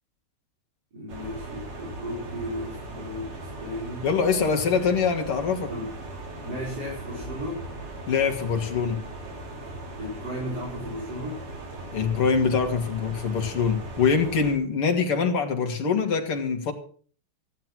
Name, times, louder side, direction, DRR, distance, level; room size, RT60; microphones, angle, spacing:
voice 1, 0.9-4.1 5.7-5.9 6.4-7.7 10.0-11.4, equal, 45° right, -5 dB, 5.8 m, -35 dB
sound 1, 1.1-14.5, right 2 dB, 75° right, 4.0 m, -39 dB
voice 2, 4.0-5.7 8.1-9.0 11.9-16.7, left 5 dB, 90° left, 4 dB, 2.9 m, -24 dB
14.0 x 11.5 x 6.1 m, 0.44 s
omnidirectional pair, 2.4 m